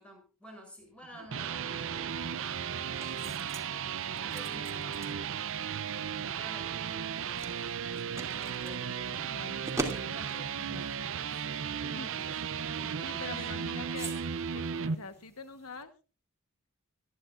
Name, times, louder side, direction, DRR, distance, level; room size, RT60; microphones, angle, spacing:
voice 1, 0.0-3.5 3.9-5.1 5.9-7.7 8.1-9.6 9.9-10.9 11.3-12.3 12.7-13.4, equal, 5° left, 0 dB, 7.6 m, -52 dB
sound 1, 1.0-15.0, right 7 dB, 60° right, 0.6 m, -35 dB
sound 2, 2.1-15.8, right 2 dB, 15° right, 2.6 m, -46 dB
voice 2, 9.2-9.6 10.6-10.9 11.8-12.1 13.0-14.1 14.5-15.9, left 4 dB, 85° left, 9 dB, 1.2 m, -44 dB
25.0 x 10.5 x 2.5 m, 0.34 s
head